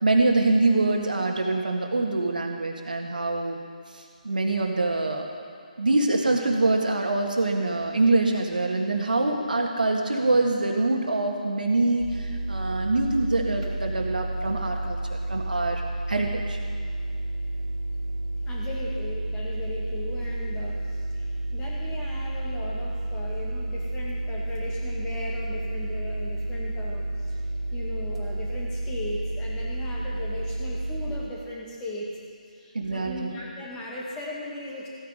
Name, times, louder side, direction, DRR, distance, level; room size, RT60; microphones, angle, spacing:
voice 1, 0.0-3.6 3.9-5.3 5.8-15.8 16.1-16.6 32.7-33.3, right 2 dB, 80° right, 2 dB, 1.8 m, -24 dB
sound 1, 12.0-31.2, right 1 dB, 50° right, 2.3 m, -31 dB
voice 2, 18.4-27.4 27.7-32.1 32.5-34.9, left 1 dB, 15° left, -4 dB, 2.0 m, -37 dB
15.0 x 9.3 x 5.1 m, 2.4 s
figure-of-eight pair, 150°, 5 cm